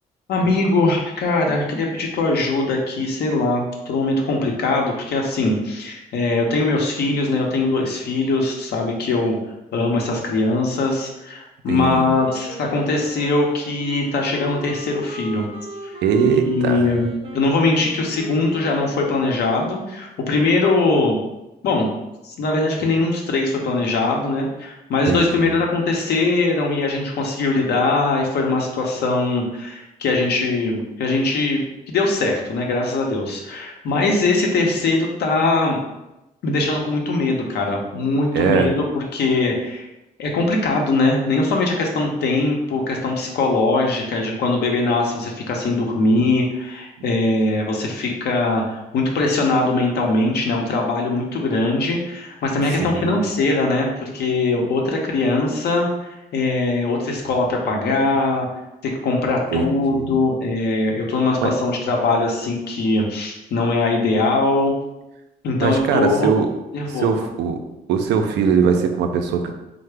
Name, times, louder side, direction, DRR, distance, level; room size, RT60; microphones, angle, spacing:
voice 1, 0.3-9.4 9.7-15.5 16.2-17.1 17.3-21.2 21.6-21.9 22.2-31.6 31.9-35.8 36.4-39.9 40.2-58.5 58.8-64.7 65.4-66.3 66.7-67.1, left 2 dB, 70° left, 0 dB, 0.7 m, -21 dB
voice 2, 11.7-12.0 16.0-16.9 25.0-25.5 38.3-38.7 52.8-53.2 59.5-60.1 61.4-61.5 65.6-66.5 66.9-67.6 67.9-69.5, right 6 dB, 80° right, 5 dB, 0.4 m, -21 dB
Wind instrument woodwind instrument, 12.0-19.6, right 1 dB, 35° right, 0.6 m, -37 dB
3.6 x 2.1 x 3.3 m, 0.97 s
supercardioid pair, 65°, 17 cm